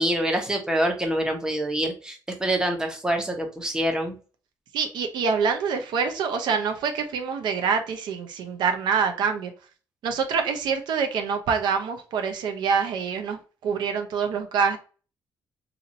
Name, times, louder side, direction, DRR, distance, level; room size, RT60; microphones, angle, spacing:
voice 1, 0.0-4.2, right 1 dB, 10° right, 3 dB, 0.9 m, -26 dB
voice 2, 4.7-9.5 10.0-14.8, right 6 dB, 85° right, 6 dB, 0.7 m, -26 dB
2.8 x 2.6 x 4.0 m, 0.36 s
cardioid pair, 105°, 7 cm